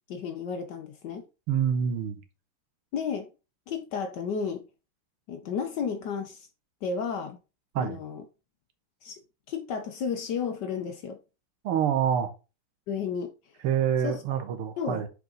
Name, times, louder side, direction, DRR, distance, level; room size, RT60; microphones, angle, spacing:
voice 1, 0.1-1.2 2.9-3.3 3.7-4.7 5.3-6.5 6.8-7.4 7.8-8.2 9.0-9.2 9.5-11.2 12.9-13.3 14.0-14.2 14.8-15.1, left 6 dB, 65° left, 1.1 m, -32 dB
voice 2, 1.5-2.2 7.8-8.0 11.6-12.3 13.6-15.1, right 8 dB, 85° right, 1.9 m, -26 dB
6.6 x 4.8 x 3.8 m
omnidirectional pair, 2.4 m